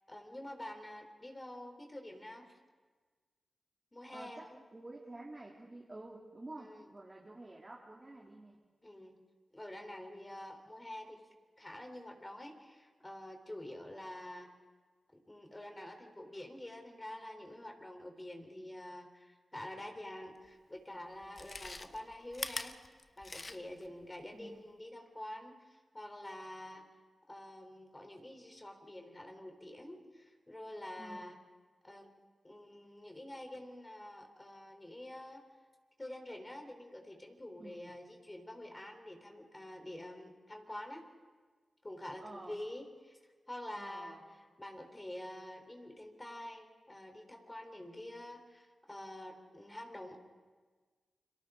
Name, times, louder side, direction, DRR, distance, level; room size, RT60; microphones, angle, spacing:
voice 1, 0.1-2.5 3.9-4.6 6.6-6.9 8.8-9.2 9.5-11.2 11.6-14.5 15.1-22.8 23.2-26.9 27.3-31.4 31.8-32.1 32.4-35.4 36.0-41.1 41.8-43.2 43.5-50.2, left 1 dB, 25° left, 3 dB, 3.7 m, -47 dB
voice 2, 4.1-8.6 24.3-24.6 31.0-31.3 37.6-37.9 42.2-42.6 43.8-44.2, right 2 dB, 30° right, -3 dB, 2.9 m, -50 dB
Chewing mastication, 20.4-20.5 21.2-23.9 24.2-24.3, left 2 dB, 40° left, 1.1 m, -43 dB
30.0 x 23.0 x 3.8 m, 1.4 s
cardioid pair, 40°, 0 cm